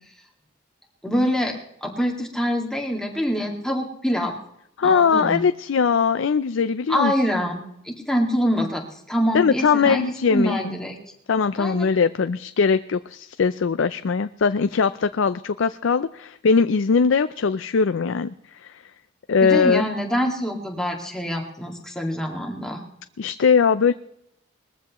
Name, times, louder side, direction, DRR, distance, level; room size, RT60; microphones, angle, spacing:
voice 1, 1.0-1.5 1.8-4.3 4.8-5.4 6.9-11.0 11.6-11.9 19.4-22.8, equal, 5° left, 0 dB, 2.0 m, -25 dB
voice 2, 4.8-7.1 9.3-10.6 11.3-18.3 19.3-19.8 23.2-23.9, left 5 dB, 75° left, 11 dB, 0.4 m, -20 dB
20.5 x 14.5 x 3.1 m, 0.74 s
head